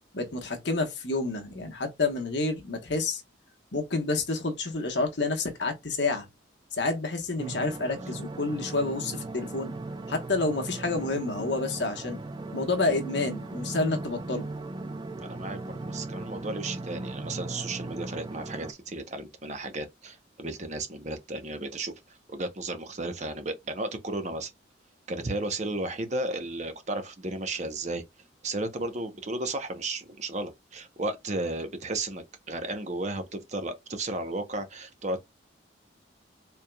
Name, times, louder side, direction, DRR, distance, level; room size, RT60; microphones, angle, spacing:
voice 1, 0.1-3.2 3.7-6.3 6.7-9.7 10.1-12.2 12.5-14.5, left 3 dB, 65° left, 1.1 m, -29 dB
sound 1, 7.4-18.7, right 2 dB, 20° right, 0.3 m, -38 dB
voice 2, 15.2-21.9 22.3-24.5 25.1-28.0 28.4-35.2, right 2 dB, 40° right, 0.8 m, -34 dB
4.5 x 3.4 x 2.2 m
head